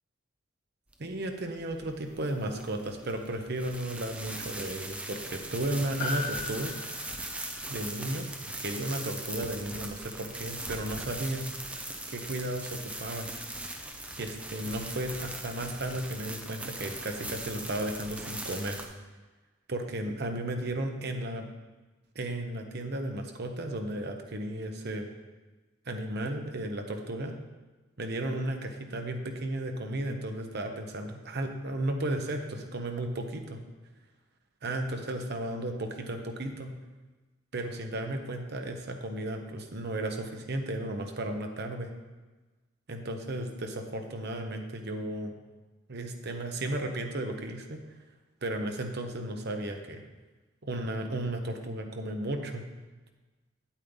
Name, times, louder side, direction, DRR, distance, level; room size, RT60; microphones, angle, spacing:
sound 1, 0.9-18.8, right 1 dB, 5° right, 0.7 m, -40 dB
voice 1, 1.0-6.7 7.7-8.3 8.6-11.4 12.1-13.3 14.2-18.8 19.7-21.5 22.1-25.1 25.9-27.3 28.0-33.6 34.6-36.7 37.5-41.9 42.9-45.4 45.9-47.8 48.4-50.0 50.6-52.6, right 1 dB, 55° right, 5 dB, 0.9 m, -34 dB
Piano, 6.0-10.6 10.8-10.9, left 4 dB, 60° left, 1.9 m, -41 dB
8.4 x 8.4 x 3.9 m, 1.2 s
head